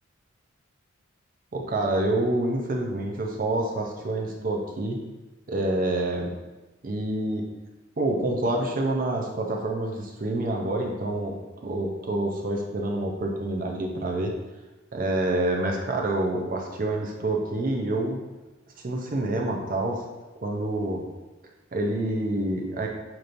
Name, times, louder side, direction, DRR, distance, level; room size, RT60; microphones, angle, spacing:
voice 1, 1.5-5.0 5.5-6.3 6.8-7.4 8.0-11.4 11.6-14.3 14.9-18.2 18.8-20.1 20.4-21.0 21.7-22.9, right 1 dB, 40° right, 1 dB, 0.5 m, -27 dB
6.5 x 3.0 x 2.6 m, 1.1 s
head